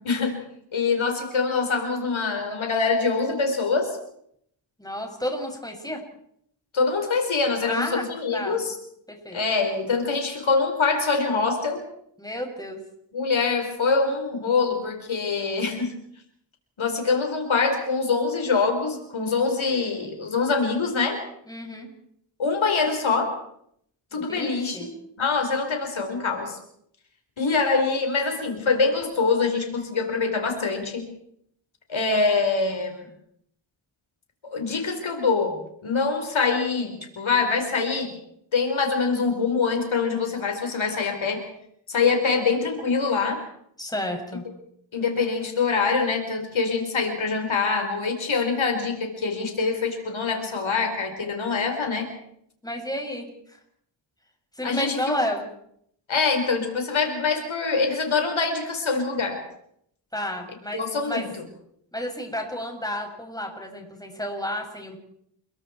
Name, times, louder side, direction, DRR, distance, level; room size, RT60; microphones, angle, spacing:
voice 1, 0.0-0.4 0.7-4.0 6.7-8.7 9.3-11.8 13.1-16.0 16.8-21.2 22.4-23.4 24.1-24.9 25.2-26.6 27.4-31.1 31.9-33.1 34.4-38.2 38.5-41.5 41.9-43.4 44.9-52.1 54.6-55.2 56.1-59.4 60.7-61.4, left 4 dB, 80° left, 4 dB, 4.8 m, -24 dB
voice 2, 4.8-6.0 7.6-8.1 8.3-8.6 9.1-9.4 12.2-12.8 21.5-21.9 24.1-24.9 43.8-44.4 52.6-53.6 54.6-55.5 60.1-61.3 61.9-65.0, left 1 dB, 10° left, 2 dB, 7.0 m, -31 dB
30.0 x 22.5 x 4.6 m, 0.70 s
cardioid pair, 65°, 46 cm